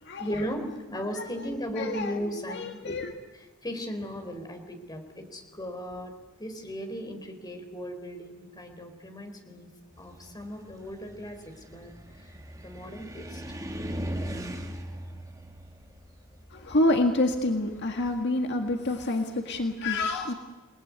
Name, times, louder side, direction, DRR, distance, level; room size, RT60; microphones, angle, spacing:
voice 1, 0.2-3.0 3.3-9.7 10.0-13.4, equal, 20° left, 4 dB, 4.4 m, -37 dB
voice 2, 1.2-1.5 1.8-2.1 2.5-3.1 16.5-20.3, left 2 dB, 55° left, 4 dB, 1.8 m, -27 dB
Car, 10.0-18.2, equal, 15° right, 2.4 m, -39 dB
29.0 x 20.0 x 9.8 m, 1.3 s
head